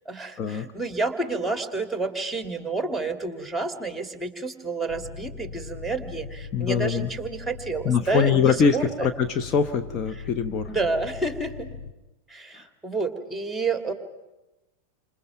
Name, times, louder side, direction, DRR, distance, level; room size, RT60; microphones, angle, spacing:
voice 1, 0.1-9.1 10.1-10.2 10.7-11.7 12.3-13.9, right 3 dB, ahead, 7 dB, 2.4 m, -29 dB
sound 1, 4.9-11.9, left 5 dB, 60° left, 1.3 m, -40 dB
voice 2, 6.5-7.1 7.8-10.7, left 6 dB, 30° left, 7 dB, 1.0 m, -23 dB
29.0 x 26.5 x 5.9 m, 1.0 s
figure-of-eight pair, 90°, 0 cm